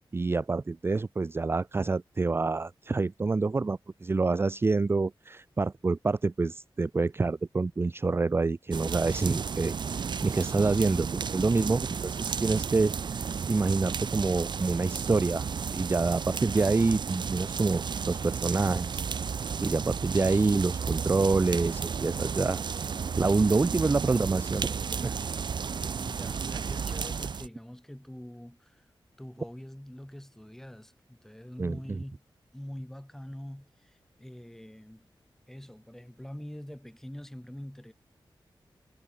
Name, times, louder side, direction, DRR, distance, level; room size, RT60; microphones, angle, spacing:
voice 1, 0.1-12.9 13.5-15.5 15.7-19.0 19.6-22.6 23.2-25.2 31.6-32.0, right 3 dB, 25° right, 0.7 m, -27 dB
sound 1, 8.7-27.5, right 6 dB, 60° right, 0.8 m, -33 dB
voice 2, 26.0-28.9 29.2-32.2 32.5-35.1 35.5-37.9, equal, 5° left, 4.7 m, -44 dB
wide cardioid pair, 175°, 9 cm